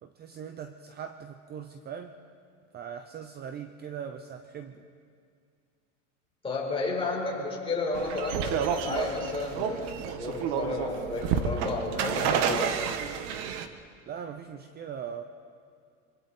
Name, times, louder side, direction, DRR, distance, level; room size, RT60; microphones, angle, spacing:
voice 1, 0.0-2.2 2.7-4.8 14.1-15.2, right 8 dB, 25° right, 8 dB, 0.8 m, -40 dB
voice 2, 6.4-12.8, left 3 dB, 15° left, -2 dB, 4.6 m, -32 dB
sound 1, 7.9-13.7, right 7 dB, 65° right, 1.6 m, -30 dB
26.0 x 25.0 x 4.4 m, 2.3 s
supercardioid pair, 140°, 37 cm